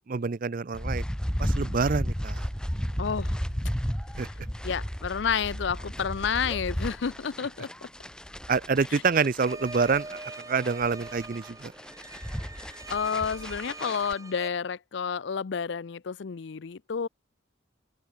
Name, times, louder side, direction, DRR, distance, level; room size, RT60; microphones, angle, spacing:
voice 1, 0.1-1.0 1.4-2.5 4.2-4.3 8.5-10.2 10.5-11.7, right 5 dB, 45° right, 0.5 m, -27 dB
sound 1, 0.7-14.1, equal, 5° left, 1.0 m, -34 dB
sound 2, 1.5-9.8, right 1 dB, 65° right, 2.6 m, -57 dB
voice 2, 3.0-3.4 4.2-4.3 4.6-7.9 8.9-9.0 12.6-17.1, left 6 dB, 65° left, 0.5 m, -30 dB
sound 3, 9.5-14.5, right 3 dB, 15° right, 1.6 m, -43 dB
open air
head